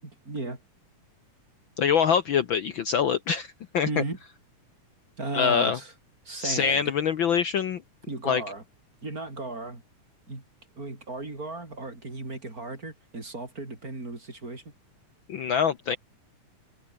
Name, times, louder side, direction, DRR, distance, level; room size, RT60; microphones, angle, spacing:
voice 1, 0.0-0.6 3.8-4.2 5.2-5.9 6.2-6.8 8.1-8.6 9.0-9.8 10.3-10.4 10.8-14.6, right 2 dB, 25° right, 5.0 m, -35 dB
voice 2, 1.8-4.0 5.3-5.8 6.4-7.8 8.2-8.4 15.3-16.0, left 7 dB, 85° left, 1.0 m, -24 dB
omnidirectional pair, 3.7 m